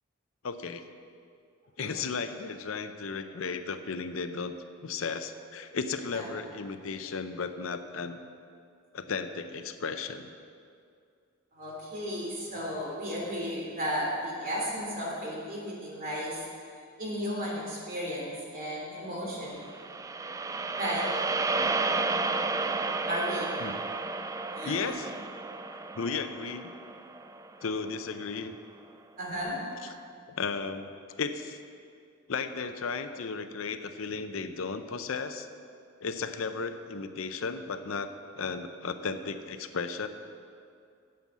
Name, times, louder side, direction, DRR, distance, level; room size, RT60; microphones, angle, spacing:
voice 1, 0.4-0.9 1.8-4.5 4.8-8.2 8.9-10.3 23.6-23.8 24.6-25.2 25.9-26.7 27.6-28.5 29.8-29.9 30.4-30.9 31.2-31.6 32.3-35.5 36.0-40.1, left 5 dB, 80° left, 9 dB, 0.6 m, -34 dB
voice 2, 11.5-16.4 17.0-19.7 20.8-21.1 21.5-21.7 23.1-23.5 24.5-24.8 29.2-29.6, equal, 45° right, -3 dB, 2.8 m, -34 dB
sound 1, 19.7-28.0, right 3 dB, 15° right, 0.3 m, -32 dB
9.3 x 7.6 x 7.3 m, 2.4 s
head